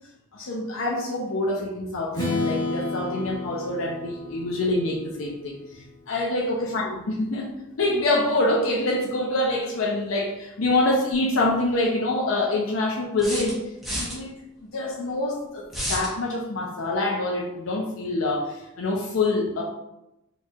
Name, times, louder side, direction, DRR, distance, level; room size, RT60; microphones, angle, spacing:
voice 1, 0.3-7.5 7.8-13.6 13.9-14.3 14.6-15.6 15.9-19.6, left 2 dB, 80° left, -2 dB, 0.6 m, -26 dB
Strum, 2.1-6.1, left 3 dB, 20° left, 1.1 m, -32 dB
sound 1, 13.2-14.2 15.7-16.1, equal, ahead, 0.8 m, -30 dB
4.4 x 3.0 x 2.4 m, 0.89 s
head